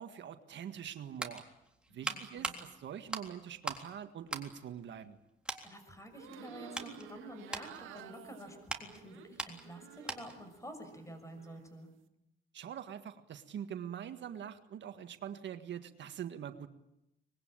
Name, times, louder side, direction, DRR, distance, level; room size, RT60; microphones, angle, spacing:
voice 1, 0.0-1.4 1.9-5.2 12.5-16.7, right 9 dB, 65° right, 8 dB, 1.7 m, -44 dB
sound 1, 1.1-3.9 4.2-5.2 5.5-5.7 6.3-10.5 10.8-11.0, right 1 dB, 5° right, 3.6 m, -42 dB
voice 2, 1.9-2.6 5.6-11.9, equal, 15° left, 9 dB, 6.3 m, -49 dB
sound 2, 6.1-10.5 10.9-11.6, right 11 dB, 85° right, 1.7 m, -53 dB
25.0 x 21.0 x 9.0 m, 0.89 s
cardioid pair, 90°, 20 cm